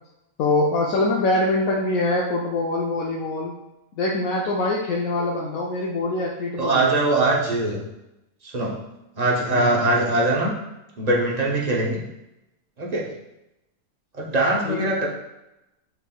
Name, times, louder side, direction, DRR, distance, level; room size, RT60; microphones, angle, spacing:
voice 1, 0.4-3.5 4.0-7.0 9.5-9.7 14.6-14.8, left 2 dB, 90° left, -3 dB, 1.1 m, -24 dB
voice 2, 6.6-7.8 8.4-8.8 9.2-10.5 11.0-12.0 12.8-13.1 14.2-15.1, right 2 dB, 35° right, -3 dB, 0.8 m, -22 dB
6.0 x 3.3 x 2.3 m, 0.91 s
omnidirectional pair, 1.4 m